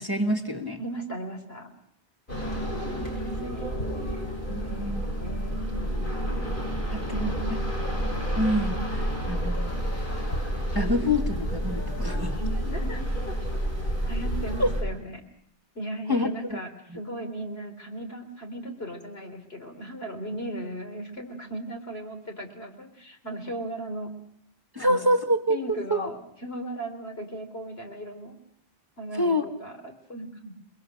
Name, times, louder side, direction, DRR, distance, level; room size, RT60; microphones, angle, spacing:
voice 1, 0.0-0.8 4.5-5.0 6.9-7.6 8.4-9.9 10.7-12.4 14.6-14.7 16.1-16.6 16.9-17.0 24.7-26.1 29.1-29.5, equal, 20° right, 6 dB, 1.5 m, -27 dB
voice 2, 0.8-1.7 2.3-3.7 4.0-5.8 7.1-7.6 12.7-13.4 14.0-15.2 15.7-24.1 24.8-25.1 25.5-28.4 29.0-30.5, right 1 dB, 70° left, 4 dB, 3.9 m, -37 dB
sound 1, 2.3-14.8, equal, 50° left, 8.1 m, -29 dB
29.0 x 21.5 x 6.6 m, 0.71 s
omnidirectional pair, 1.1 m